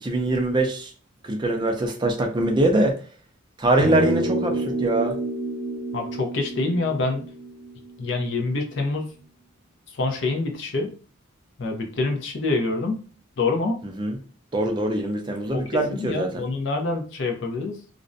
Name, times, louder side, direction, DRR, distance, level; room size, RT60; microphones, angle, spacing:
voice 1, 0.0-0.9 1.2-2.9 3.6-5.1 14.0-14.2 14.5-16.5, right 1 dB, 20° right, 4 dB, 0.3 m, -23 dB
sound 1, 3.8-8.3, right 1 dB, 70° right, 0.6 m, -29 dB
voice 2, 5.9-7.3 8.0-9.1 9.9-10.9 11.6-13.0 13.4-13.8 15.5-15.6 15.9-17.8, left 3 dB, 55° left, 3 dB, 0.5 m, -26 dB
2.4 x 2.0 x 2.5 m, 0.39 s
head